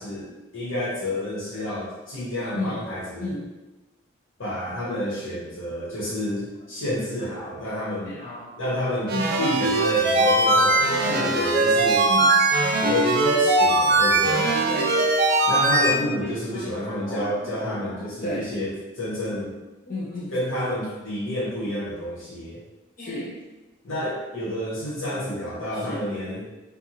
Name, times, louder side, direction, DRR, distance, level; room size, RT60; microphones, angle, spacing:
voice 1, 0.0-3.3 4.4-8.1 8.6-12.1 12.8-14.5 15.4-19.5 20.3-22.6 23.8-26.4, left 1 dB, 80° left, -7 dB, 1.1 m, -29 dB
voice 2, 2.5-2.8 3.2-3.4 6.8-6.9 8.0-8.8 9.1-9.4 10.9-11.6 12.1-12.5 14.7-15.0 15.8-16.7 17.0-18.5 19.9-20.3 23.0-23.4 24.8-24.9 25.3-25.4 25.7-26.0, left 1 dB, 45° left, -6 dB, 0.4 m, -34 dB
sound 1, 9.1-15.9, right 2 dB, 55° right, 0.4 m, -20 dB
2.6 x 2.3 x 2.8 m, 1.1 s
head